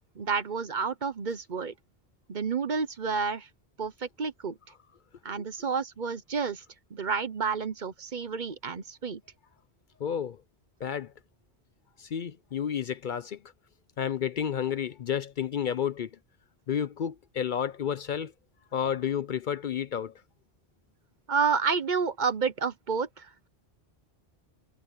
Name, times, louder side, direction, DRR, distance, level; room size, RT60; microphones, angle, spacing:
voice 1, 0.2-1.7 2.3-3.5 3.8-4.6 5.2-6.6 6.9-9.2 21.3-23.5, right 5 dB, 50° right, 1.0 m, -30 dB
voice 2, 10.0-10.4 10.8-11.1 12.0-13.4 14.0-16.1 16.7-18.3 18.7-20.1, left 8 dB, 55° left, 0.7 m, -31 dB
omnidirectional pair, 1.1 m